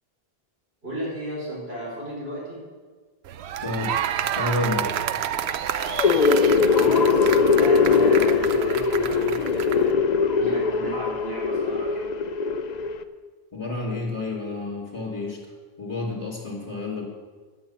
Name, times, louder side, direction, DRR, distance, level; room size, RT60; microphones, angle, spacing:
voice 1, 0.8-2.6 6.7-12.1, right 1 dB, 70° right, -6 dB, 5.0 m, -34 dB
sound 1, 3.3-9.9, right 10 dB, 85° right, 0.8 m, -29 dB
voice 2, 3.6-4.0 4.3-4.9 13.5-15.4 15.8-17.1, left 2 dB, 25° left, -6 dB, 2.6 m, -29 dB
sound 2, 5.8-13.0, left 5 dB, 50° left, 0.6 m, -21 dB
10.0 x 8.6 x 7.5 m, 1.4 s
omnidirectional pair, 1.1 m